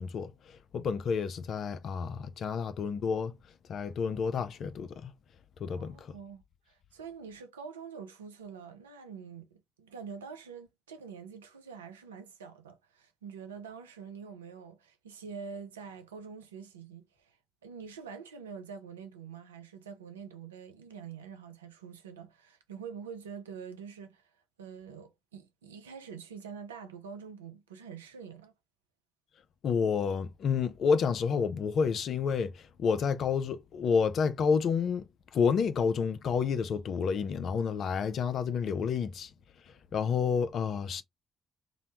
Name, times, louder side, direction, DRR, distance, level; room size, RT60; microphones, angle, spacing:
voice 1, 0.0-3.4 3.7-5.1 5.6-6.1 29.6-39.3 39.6-41.0, left 6 dB, 60° left, 0.4 m, -30 dB
voice 2, 5.7-28.5, right 6 dB, 85° right, 0.4 m, -46 dB
2.9 x 2.0 x 2.8 m
figure-of-eight pair, 40°, 0 cm